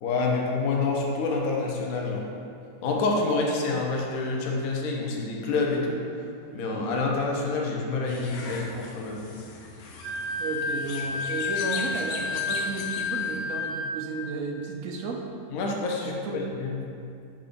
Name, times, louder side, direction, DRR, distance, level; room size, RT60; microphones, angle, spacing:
voice 1, 0.0-2.2 2.8-6.0 6.5-9.3 15.5-16.8, left 3 dB, 65° left, -1 dB, 1.2 m, -27 dB
sound 1, 8.1-13.4, left 4 dB, 85° left, 1.3 m, -40 dB
Wind instrument woodwind instrument, 10.0-13.9, left 4 dB, 85° right, 1.4 m, -30 dB
voice 2, 10.4-15.2 16.1-16.4, right 3 dB, 65° right, 1 dB, 0.9 m, -33 dB
6.0 x 3.9 x 5.1 m, 2.5 s
omnidirectional pair, 1.8 m